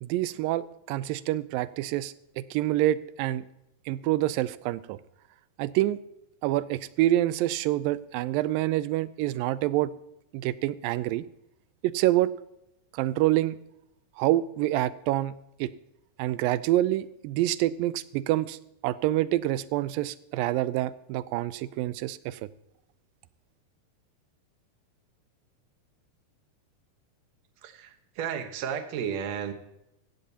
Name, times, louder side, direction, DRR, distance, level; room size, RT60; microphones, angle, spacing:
voice 1, 0.0-3.4 3.9-5.0 5.6-6.0 6.4-9.9 10.3-11.3 11.8-12.3 12.9-13.6 14.2-15.3 15.6-15.7 16.2-18.6 18.8-22.4, right 15 dB, 85° right, 16 dB, 2.3 m, -27 dB
voice 2, 27.6-29.5, right 8 dB, 60° right, 7 dB, 2.1 m, -33 dB
15.5 x 15.0 x 2.9 m, 0.85 s
omnidirectional pair, 4.0 m